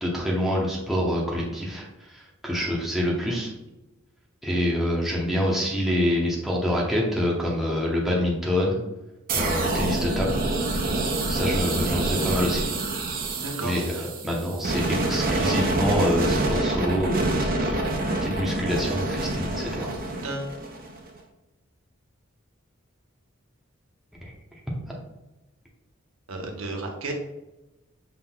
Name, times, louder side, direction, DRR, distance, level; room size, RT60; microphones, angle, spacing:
voice 1, 0.0-3.5 4.4-8.8 9.3-10.4 10.7-10.8 11.3-12.7 13.6-17.9 18.2-19.9 24.2-24.3, equal, ahead, -4 dB, 0.8 m, -26 dB
sound 1, 9.3-21.1, right 2 dB, 45° right, 0.7 m, -26 dB
voice 2, 13.3-14.1 19.7-20.5 26.3-27.1, right 2 dB, 75° right, 1 dB, 0.8 m, -34 dB
5.7 x 3.7 x 2.3 m, 1.0 s
head